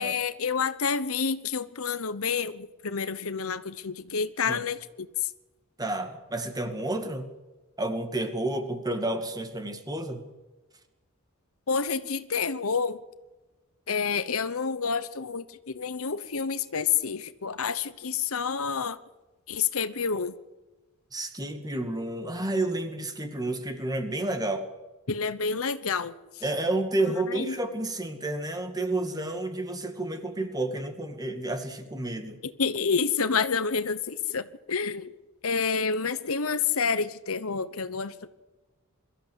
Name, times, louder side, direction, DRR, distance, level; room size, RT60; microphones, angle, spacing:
voice 1, 0.0-5.3 11.7-13.0 13.9-19.0 19.5-20.3 25.1-26.4 27.3-27.6 32.4-35.1 35.4-38.3, left 5 dB, 75° left, 14 dB, 1.0 m, -29 dB
voice 2, 5.8-7.3 7.8-10.2 21.1-24.7 26.4-32.4, right 2 dB, 20° right, 7 dB, 2.2 m, -30 dB
23.0 x 14.0 x 8.1 m, 1.1 s
head